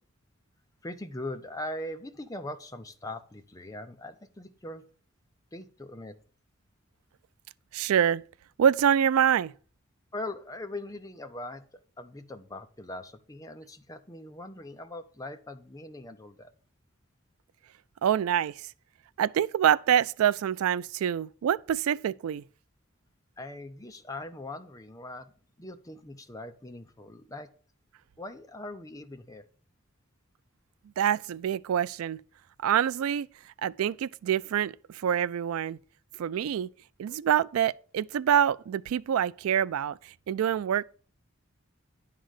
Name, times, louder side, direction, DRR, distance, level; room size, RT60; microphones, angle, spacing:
voice 1, 0.8-4.8 5.5-6.2 10.1-11.6 12.0-16.5 23.4-25.3 25.6-27.5 28.2-29.4, left 1 dB, 15° left, 0.6 m, -41 dB
voice 2, 7.7-8.2 8.6-9.5 18.0-18.6 19.2-22.4 31.0-32.2 32.6-33.3 33.6-35.8 36.2-36.7 37.0-40.8, right 9 dB, 90° right, 0.3 m, -26 dB
10.5 x 3.8 x 6.4 m
head